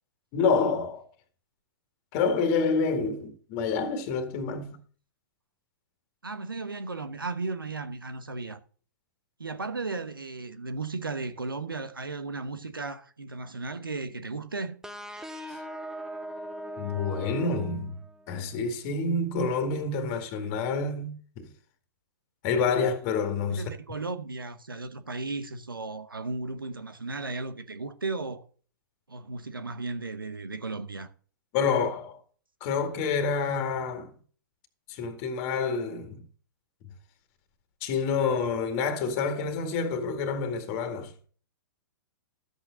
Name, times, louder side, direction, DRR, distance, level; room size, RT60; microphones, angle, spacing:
voice 1, 0.3-1.0 2.1-4.8 15.5-15.6 16.8-18.0 18.3-21.5 22.4-23.7 31.5-32.2 32.6-34.1 34.9-36.2 37.8-41.1, left 5 dB, 35° left, 2.1 m, -28 dB
voice 2, 6.2-8.6 9.4-14.8 23.5-28.4 29.1-31.1, right 3 dB, 80° right, 1.2 m, -35 dB
sound 1, 14.8-18.4, equal, 5° right, 0.9 m, -40 dB
13.0 x 8.2 x 3.9 m
figure-of-eight pair, 110°, 11 cm